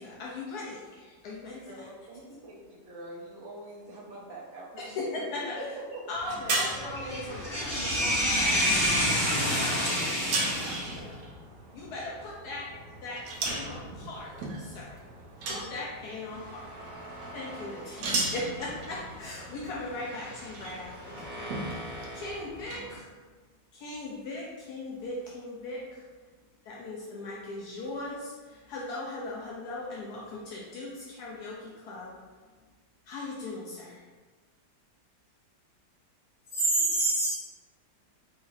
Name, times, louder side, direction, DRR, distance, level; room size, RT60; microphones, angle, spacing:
voice 1, 0.0-1.9 4.8-5.6 6.1-7.7 8.1-8.5 9.5-9.9 10.3-11.1 11.7-15.0 15.4-16.7 17.0-23.1 23.7-26.0 26.6-32.1 33.1-34.0, left 2 dB, 75° left, -5 dB, 1.1 m, -39 dB
voice 2, 1.7-5.1 5.6-5.7 5.9-6.1 6.6-8.5 9.6-10.1, right 2 dB, 65° right, -3 dB, 0.8 m, -44 dB
sound 1, 6.1-23.0, right 2 dB, 85° right, 1.2 m, -38 dB
voice 3, 6.9-11.0 36.5-37.3, equal, 50° left, -11 dB, 1.8 m, -27 dB
sound 2, 16.3-22.4, equal, 30° right, 0.3 m, -45 dB
3.8 x 2.9 x 2.5 m, 1.4 s
omnidirectional pair, 1.8 m